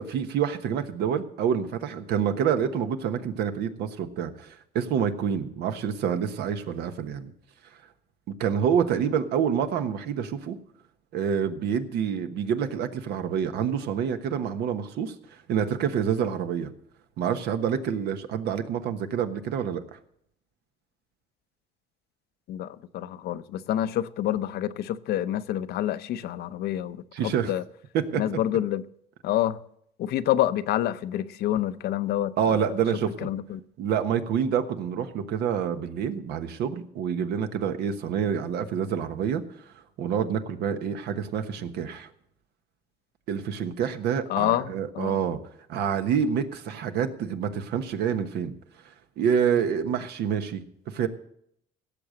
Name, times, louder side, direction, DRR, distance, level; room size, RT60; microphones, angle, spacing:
voice 1, 0.0-7.3 8.3-10.6 11.1-16.7 17.2-20.0 27.1-27.5 27.9-28.2 32.4-33.3 33.8-39.4 40.0-42.1 43.3-45.4 45.7-48.6 49.2-51.1, right 8 dB, 80° right, 1.2 m, -27 dB
voice 2, 22.5-27.6 28.1-28.8 29.2-29.6 30.0-32.6 33.2-33.6 44.3-45.2, left 12 dB, 70° left, 0.7 m, -28 dB
17.0 x 6.9 x 7.6 m
cardioid pair, 110°, 17 cm